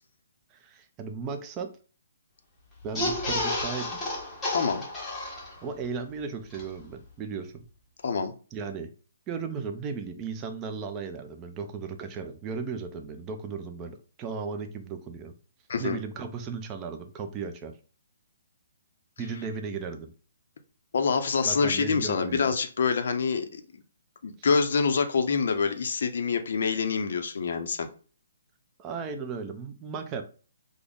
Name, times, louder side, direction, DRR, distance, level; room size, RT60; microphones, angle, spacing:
voice 1, 0.5-1.7 2.8-3.9 5.6-7.7 8.5-8.9 9.3-15.3 15.8-17.7 19.2-20.1 21.4-22.5 24.4-24.5 28.8-30.2, right 5 dB, 15° right, 0.3 m, -36 dB
sound 1, 2.8-5.8 6.2-6.3 6.5-6.6, left 2 dB, 10° left, 0.7 m, -31 dB
voice 2, 4.5-4.8 8.0-8.3 15.7-16.0 20.9-23.6 24.2-27.9, left 5 dB, 55° left, 0.5 m, -26 dB
3.4 x 2.0 x 3.6 m
hypercardioid pair, 175°, 0 cm